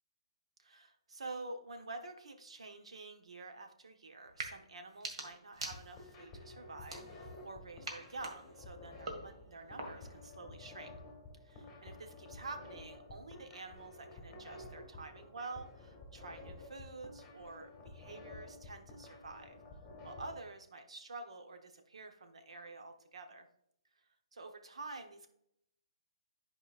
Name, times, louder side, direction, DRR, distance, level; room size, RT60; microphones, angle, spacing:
voice 1, 0.6-10.9 11.4-19.6 20.0-23.5 24.3-25.3, right 3 dB, 90° right, 6 dB, 1.0 m, -48 dB
sound 1, 4.3-4.5 4.9-6.2 6.8-7.5 7.8-10.2, right 2 dB, 70° right, 1.7 m, -46 dB
sound 2, 5.6-20.3, left 2 dB, 15° left, 1.6 m, -52 dB
11.5 x 4.8 x 2.4 m, 0.77 s
hypercardioid pair, 155°, 3 cm